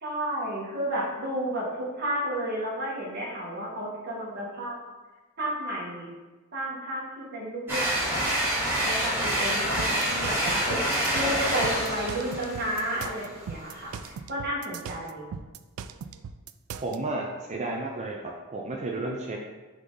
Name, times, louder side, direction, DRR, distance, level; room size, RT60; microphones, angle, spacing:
voice 1, 0.0-4.8 5.4-6.1 6.5-8.2 8.8-10.8 11.1-13.9 14.3-15.3, right 1 dB, 50° right, -5 dB, 1.7 m, -32 dB
sound 1, 7.7-14.1, right 1 dB, 10° right, 1.7 m, -28 dB
sound 2, 9.8-17.0, right 6 dB, 80° right, 0.3 m, -39 dB
voice 2, 16.8-19.4, right 2 dB, 30° right, 0 dB, 0.5 m, -32 dB
6.2 x 3.8 x 3.9 m, 1.2 s
head